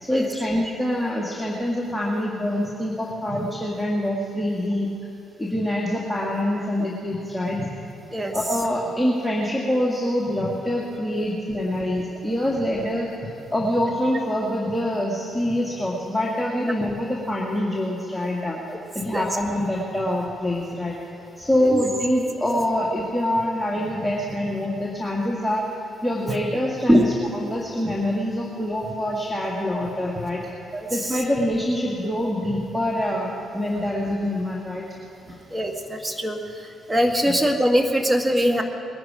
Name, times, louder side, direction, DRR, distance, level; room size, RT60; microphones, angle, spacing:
voice 1, 0.0-4.9 5.4-7.7 8.3-18.6 18.9-21.0 21.4-25.6 26.0-30.5 30.9-34.8 37.3-37.4, left 1 dB, ahead, -4 dB, 2.1 m, -25 dB
voice 2, 35.5-36.4 36.9-38.6, equal, 20° right, 4 dB, 1.9 m, -21 dB
20.5 x 11.0 x 5.0 m, 2.9 s
hypercardioid pair, 45°, 0 cm